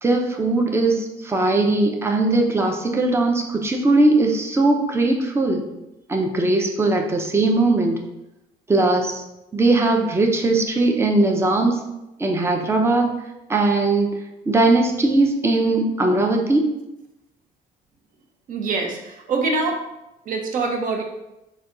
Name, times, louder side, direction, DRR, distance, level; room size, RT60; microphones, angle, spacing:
voice 1, 0.0-5.7 6.1-8.0 8.7-9.2 9.5-11.8 12.2-13.2 13.5-14.1 14.5-16.7, right 2 dB, 15° right, 2 dB, 0.5 m, -19 dB
voice 2, 18.5-19.8 20.3-21.0, right 3 dB, 55° right, 2 dB, 0.8 m, -24 dB
4.1 x 2.3 x 3.7 m, 0.93 s
cardioid pair, 110°, 17 cm